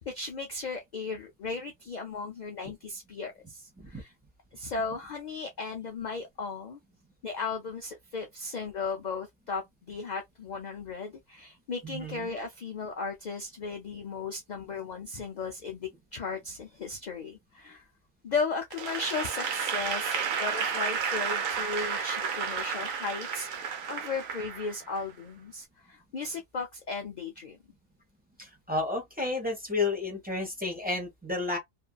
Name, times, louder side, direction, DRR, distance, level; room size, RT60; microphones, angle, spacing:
voice 1, 0.1-4.1 4.5-6.8 7.2-17.9 18.2-23.5 23.9-27.6, left 4 dB, 60° left, 0.4 m, -36 dB
voice 2, 11.8-12.3 28.7-31.6, left 3 dB, 10° right, 0.8 m, -31 dB
Applause / Crowd, 18.7-25.1, right 6 dB, 85° right, 1.1 m, -32 dB
2.6 x 2.6 x 2.2 m
omnidirectional pair, 1.4 m